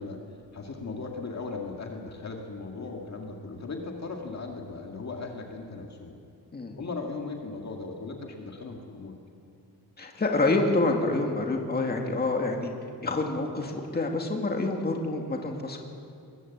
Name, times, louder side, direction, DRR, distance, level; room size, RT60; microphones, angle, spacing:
voice 1, 0.0-6.2 6.8-9.2, left 3 dB, 45° left, 1 dB, 1.9 m, -37 dB
voice 2, 10.0-12.7 13.0-15.8, left 2 dB, 25° left, 1 dB, 2.2 m, -27 dB
21.5 x 18.0 x 8.3 m, 2.5 s
wide cardioid pair, 165°, 39 cm